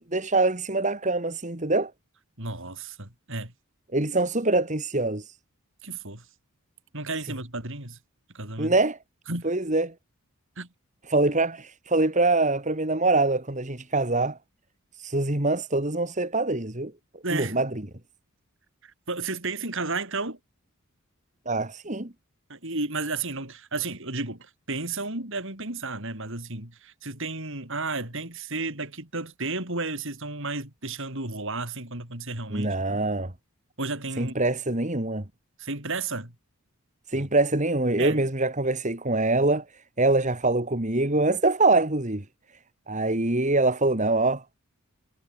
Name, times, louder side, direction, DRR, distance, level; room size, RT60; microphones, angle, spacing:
voice 1, 0.1-1.9 3.9-5.3 8.6-9.0 9.4-9.9 11.1-14.4 15.0-16.9 17.3-17.7 21.5-22.1 32.5-33.3 34.2-35.2 37.1-39.6 40.0-42.2 42.9-44.4, right 2 dB, 35° right, 2.5 m, -24 dB
voice 2, 2.4-3.5 5.8-6.2 6.9-8.0 8.3-8.7 9.3-9.5 10.6-10.7 17.2-17.6 18.8-20.4 22.5-33.1 33.8-34.4 35.6-36.3 37.1-37.3 38.0-38.3, right 3 dB, 60° right, 7.3 m, -33 dB
head